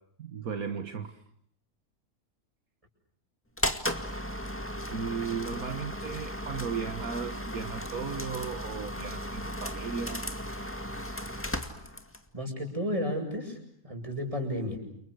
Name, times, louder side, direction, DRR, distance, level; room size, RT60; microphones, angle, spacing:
voice 1, 0.2-1.2 4.9-10.3, right 6 dB, 65° right, 7 dB, 2.0 m, -36 dB
sound 1, 3.6-12.3, equal, 10° left, 2.0 m, -35 dB
voice 2, 12.3-13.6 13.8-14.8, left 1 dB, 20° right, 4 dB, 7.7 m, -32 dB
30.0 x 29.5 x 6.5 m, 0.70 s
omnidirectional pair, 1.6 m